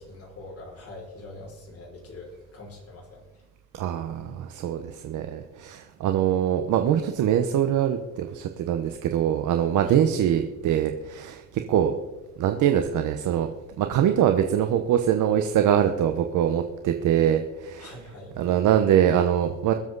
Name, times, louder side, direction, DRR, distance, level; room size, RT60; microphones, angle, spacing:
voice 1, 0.0-3.2 9.9-10.0 17.8-18.3, left 2 dB, 50° left, -2 dB, 5.7 m, -43 dB
voice 2, 3.7-11.9 12.4-13.5 13.8-17.9 18.4-19.7, right 10 dB, 80° right, 7 dB, 1.1 m, -23 dB
23.0 x 7.6 x 4.0 m, 1.1 s
cardioid pair, 90°, 30 cm